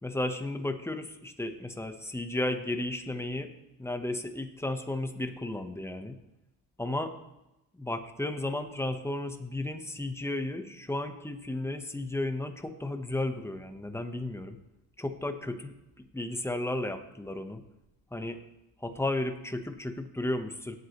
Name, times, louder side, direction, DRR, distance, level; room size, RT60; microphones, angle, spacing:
voice 1, 0.0-3.5 3.8-6.2 6.8-7.1 7.8-14.6 15.0-17.6 18.1-18.4 18.8-20.8, left 1 dB, 5° left, 7 dB, 1.0 m, -34 dB
17.0 x 8.3 x 3.1 m, 0.94 s
cardioid pair, 95°, 45 cm